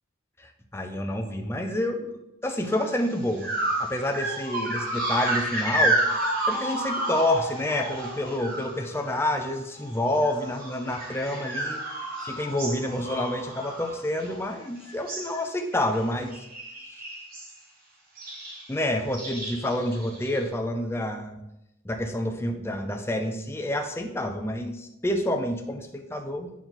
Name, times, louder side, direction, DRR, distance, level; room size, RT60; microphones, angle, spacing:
voice 1, 0.4-3.5 3.8-11.8 12.2-16.5 16.8-17.0 18.7-21.4 21.8-26.5, left 1 dB, 10° left, 5 dB, 0.6 m, -28 dB
sound 1, 2.7-2.9 3.4-9.5 9.8-14.6 14.9-15.4 15.7-16.0 16.3-17.5 18.2-18.7 19.1-20.4, right 1 dB, 45° right, 1.5 m, -30 dB
8.4 x 4.4 x 3.9 m, 0.86 s
head